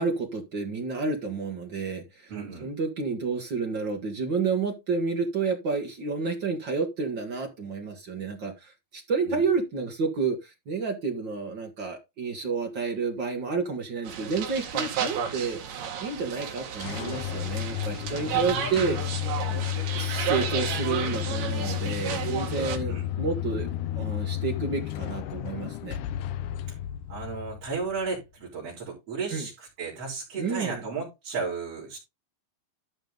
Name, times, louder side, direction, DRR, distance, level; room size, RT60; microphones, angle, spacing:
voice 1, 0.0-2.3 2.6-15.6 16.0-19.2 20.0-23.7 23.9-26.0 29.3-29.5 30.3-30.8, right 4 dB, 65° right, 1.1 m, -30 dB
voice 2, 2.3-2.7 9.2-9.4 19.5-19.7 22.9-23.1 26.7-26.8 27.1-32.0, right 4 dB, 40° right, 4.9 m, -34 dB
sound 1, 14.1-22.8, right 8 dB, 85° right, 3.8 m, -32 dB
sound 2, 16.5-28.2, left 13 dB, 80° left, 1.8 m, -32 dB
12.5 x 5.2 x 3.8 m
omnidirectional pair, 4.4 m